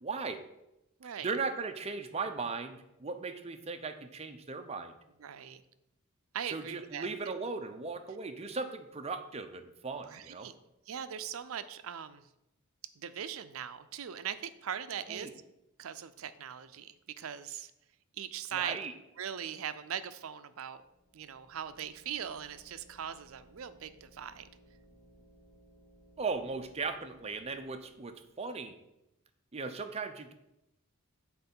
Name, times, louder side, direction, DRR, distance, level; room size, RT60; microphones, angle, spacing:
voice 1, 0.0-0.4 1.2-5.0 6.4-10.5 15.1-15.3 18.5-18.9 26.2-28.8 29.5-30.3, right 4 dB, 30° right, 7 dB, 0.6 m, -37 dB
voice 2, 5.2-5.6 6.3-7.1 10.0-10.5 10.9-12.3 13.0-15.3 15.8-17.7 18.2-18.8 19.2-20.8 21.1-24.5, right 8 dB, 70° right, 12 dB, 0.5 m, -40 dB
sound 1, 20.7-28.4, right 1 dB, 10° left, 0.9 m, -62 dB
6.8 x 4.3 x 5.4 m, 0.88 s
head